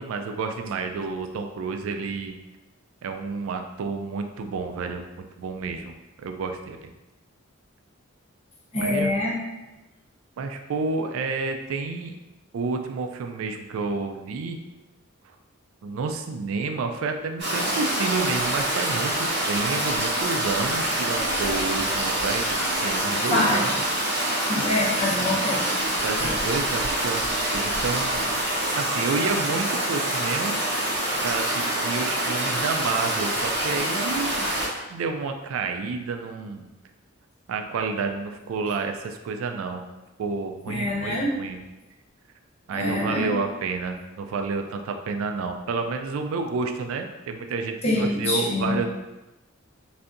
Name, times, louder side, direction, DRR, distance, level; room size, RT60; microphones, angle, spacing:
voice 1, 0.0-2.4 3.0-5.9 6.2-6.9 8.8-9.1 10.4-12.2 12.5-14.6 15.8-23.9 26.0-28.2 28.7-30.6 31.2-34.5 34.9-36.7 37.5-39.8 40.2-41.6 42.7-48.9, right 4 dB, 75° right, 5 dB, 0.3 m, -30 dB
voice 2, 8.7-9.3 23.3-23.6 24.5-25.6 26.2-26.3 40.7-41.4 42.7-43.3 47.8-48.8, left 1 dB, 30° left, -5 dB, 0.7 m, -25 dB
Stream, 17.4-34.7, right 1 dB, 55° right, 1.1 m, -26 dB
3.4 x 2.6 x 2.5 m, 1.0 s
head